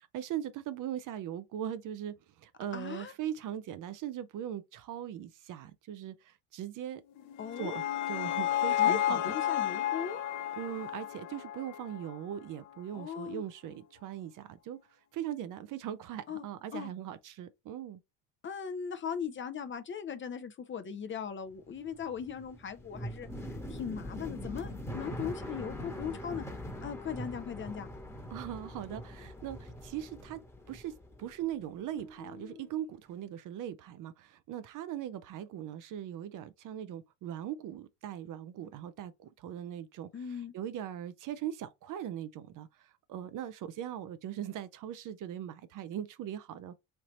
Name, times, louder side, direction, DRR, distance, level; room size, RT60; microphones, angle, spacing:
voice 1, 0.1-7.0 7.6-9.4 10.6-14.8 15.1-18.0 28.3-30.4 30.7-30.9 31.2-40.1 40.5-46.7, right 10 dB, 45° right, 0.6 m, -40 dB
voice 2, 2.7-3.1 7.4-7.8 8.7-10.2 12.9-13.4 16.3-16.5 16.7-16.9 18.4-23.3 23.7-26.4 26.8-27.9 40.1-40.5, left 7 dB, 30° left, 0.5 m, -38 dB
sound 1, 7.2-12.3, left 12 dB, 60° left, 0.7 m, -32 dB
sound 2, 21.5-31.6 31.9-32.7, equal, 5° left, 1.1 m, -43 dB
3.3 x 2.8 x 4.1 m
hypercardioid pair, 70°, 44 cm